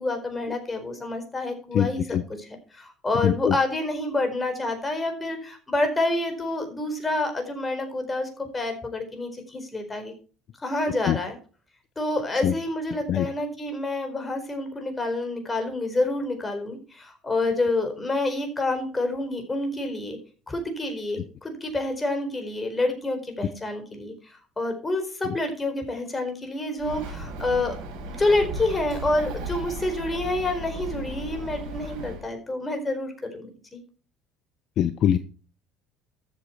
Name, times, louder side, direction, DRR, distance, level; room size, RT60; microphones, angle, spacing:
voice 1, 0.0-10.1 10.6-11.4 12.0-20.2 20.5-33.8, left 2 dB, 20° left, 5 dB, 4.5 m, -28 dB
voice 2, 1.7-2.2 3.2-3.5 11.1-11.2 12.4-12.5 13.1-13.3 34.8-35.2, left 10 dB, 55° left, 13 dB, 0.7 m, -22 dB
Bird, 26.8-32.2, right 1 dB, 75° right, 5.2 m, -35 dB
13.0 x 7.8 x 4.6 m, 0.38 s
hypercardioid pair, 75°, 0 cm